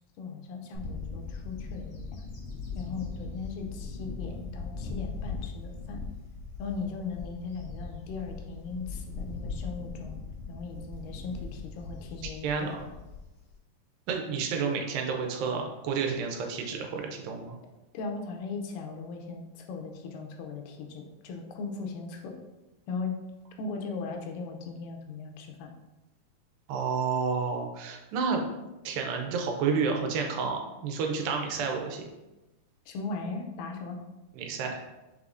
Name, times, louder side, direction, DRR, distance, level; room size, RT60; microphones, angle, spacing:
voice 1, 0.2-2.3 2.7-6.1 6.6-10.2 10.5-12.9 17.9-22.3 22.9-23.1 23.6-25.7 32.9-34.0, left 4 dB, 80° left, 3 dB, 2.2 m, -38 dB
Bird / Wind, 0.7-13.5, left 4 dB, 65° left, 1.6 m, -39 dB
voice 2, 12.4-12.8 14.1-17.6 26.7-28.4 28.8-32.0 34.4-34.8, right 5 dB, 85° right, 2 dB, 2.4 m, -30 dB
5.9 x 3.5 x 2.5 m, 1.0 s
omnidirectional pair, 4.0 m